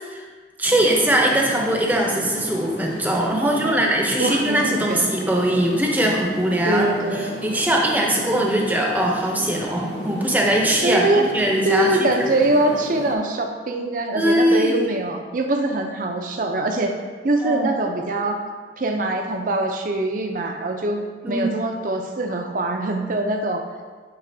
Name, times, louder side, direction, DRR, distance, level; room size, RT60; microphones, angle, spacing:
sound 1, 0.6-13.1, equal, 70° left, 0.8 m, -33 dB
voice 1, 0.6-12.1 14.1-14.8 17.4-17.8 21.2-21.5, right 1 dB, 10° right, -1 dB, 0.7 m, -21 dB
voice 2, 3.4-3.9 4.2-5.1 6.7-7.3 10.8-11.3 11.7-17.0 17.2-18.4 18.8-23.6, right 2 dB, 45° right, 3 dB, 0.6 m, -23 dB
10.5 x 3.8 x 2.7 m, 1.5 s
head